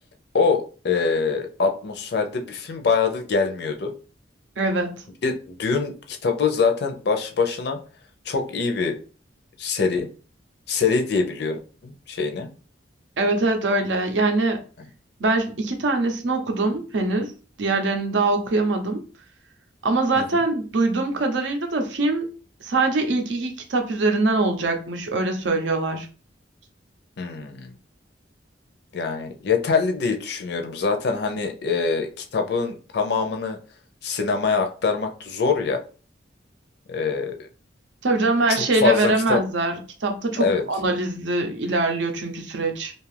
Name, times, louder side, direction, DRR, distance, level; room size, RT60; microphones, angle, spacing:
voice 1, 0.3-3.9 5.2-7.8 8.3-9.0 9.6-10.1 10.7-12.5 20.2-20.4 27.2-27.7 28.9-33.6 34.0-35.8 36.9-37.4 38.5-39.4 40.4-40.6, left 5 dB, 60° left, 4 dB, 0.5 m, -24 dB
voice 2, 4.6-4.9 13.2-14.6 15.2-17.3 17.6-19.0 19.8-22.3 22.6-26.1 38.0-42.9, right 2 dB, 75° right, 5 dB, 0.6 m, -23 dB
2.6 x 2.4 x 3.2 m, 0.37 s
head